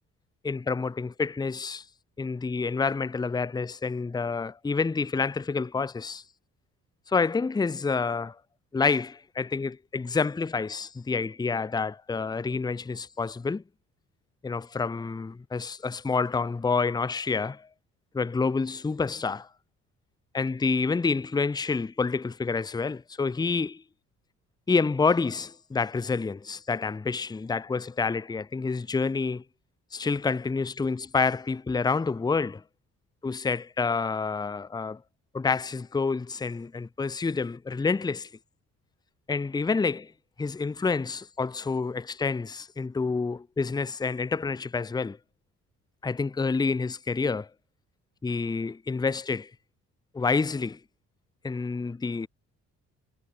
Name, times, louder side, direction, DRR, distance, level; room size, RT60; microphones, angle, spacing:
voice 1, 0.4-1.8 2.2-6.2 7.1-8.4 8.7-13.6 14.4-17.7 18.1-19.5 20.3-23.8 24.7-29.4 29.9-32.6 33.2-35.0 35.3-38.3 39.3-40.1 40.4-45.2 46.0-47.5 48.2-49.5 50.1-50.8 51.4-52.3, left 4 dB, 15° left, 0.6 m, -28 dB
cardioid pair, 90°, 30 cm